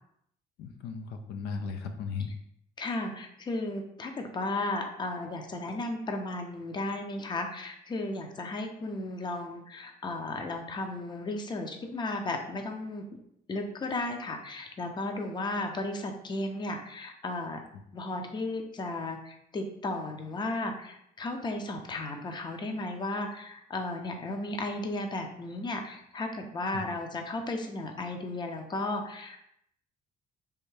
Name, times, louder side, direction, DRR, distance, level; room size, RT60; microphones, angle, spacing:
voice 1, 0.6-2.3 26.7-26.8, left 5 dB, 80° left, 6 dB, 0.4 m, -36 dB
voice 2, 2.8-13.0 13.5-17.6 17.9-29.5, left 2 dB, 25° left, 4 dB, 0.5 m, -34 dB
3.4 x 2.6 x 3.2 m, 0.75 s
cardioid pair, 110°, 17 cm